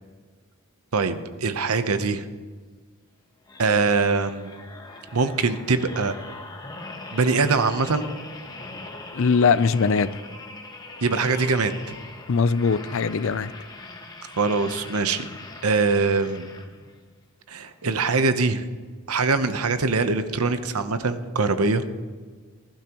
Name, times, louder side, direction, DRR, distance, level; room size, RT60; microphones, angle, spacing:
voice 1, 0.9-2.2 3.6-4.6 5.1-6.1 7.1-8.1 11.0-11.9 14.4-15.2 15.6-16.5 17.5-18.7 19.1-21.8, right 4 dB, 80° right, 0.9 m, -23 dB
sound 1, 3.4-17.0 17.6-17.8, left 3 dB, 20° left, 1.1 m, -41 dB
voice 2, 9.1-10.1 12.3-13.5, left 5 dB, 60° left, 0.5 m, -21 dB
20.5 x 12.0 x 3.0 m
head